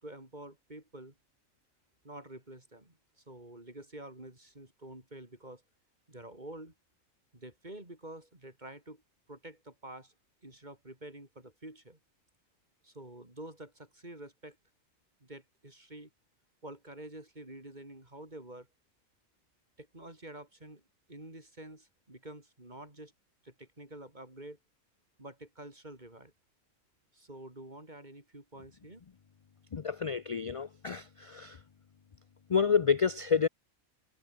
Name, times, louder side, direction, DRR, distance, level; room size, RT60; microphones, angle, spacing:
voice 1, 0.0-1.1 2.0-5.6 6.1-6.7 7.3-9.0 9.3-10.1 10.4-12.0 12.8-14.6 15.2-16.1 16.6-18.7 19.8-20.8 21.1-23.1 23.4-24.6 25.2-26.3 27.1-29.0, right 1 dB, 35° right, 4.9 m, -48 dB
voice 2, 29.7-31.6 32.5-33.5, left 6 dB, 50° left, 0.4 m, -29 dB
omnidirectional pair, 1.4 m